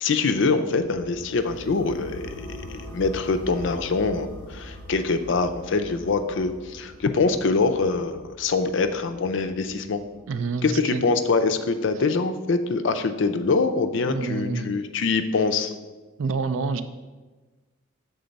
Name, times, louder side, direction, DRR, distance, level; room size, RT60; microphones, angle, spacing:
voice 1, 0.0-10.0 10.6-15.7, left 4 dB, 65° left, 9 dB, 0.5 m, -24 dB
sound 1, 0.8-10.7, equal, 50° right, 1.0 m, -43 dB
voice 2, 10.3-11.0 14.1-14.7 16.2-16.8, right 4 dB, 75° right, 11 dB, 0.4 m, -27 dB
6.9 x 3.7 x 5.2 m, 1.3 s
head